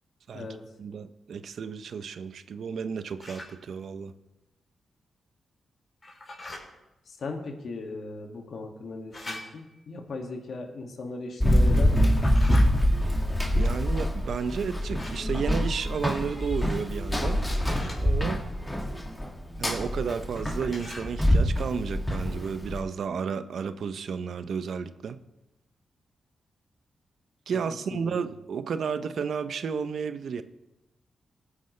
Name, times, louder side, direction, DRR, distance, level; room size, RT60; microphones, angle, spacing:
voice 1, 0.8-4.1 13.0-13.1 13.5-17.4 18.0-18.4 19.6-25.2 27.5-30.4, right 6 dB, 70° right, 0.7 m, -32 dB
sound 1, 3.2-3.5 6.0-6.6 9.1-9.8 12.0-12.7 14.9-15.3 17.3-18.0 20.7-21.1, left 1 dB, 30° left, 4.1 m, -41 dB
voice 2, 7.1-12.1 27.9-28.3, left 3 dB, 65° left, 2.1 m, -38 dB
Run, 11.4-22.8, equal, 10° left, 2.0 m, -25 dB
sound 2, 17.1-21.2, right 1 dB, 20° right, 3.0 m, -45 dB
20.5 x 9.6 x 3.3 m
wide cardioid pair, 115°, 0 cm